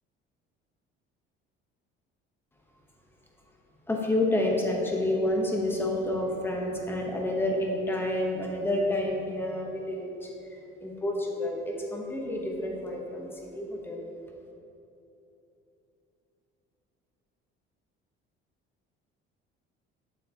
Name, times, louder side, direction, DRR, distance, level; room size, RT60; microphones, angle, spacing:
voice 1, 3.9-10.3 10.8-13.3 13.5-14.0, left 1 dB, 10° left, -1 dB, 0.9 m, -29 dB
7.7 x 7.7 x 2.8 m, 2.9 s
cardioid pair, 150°, 21 cm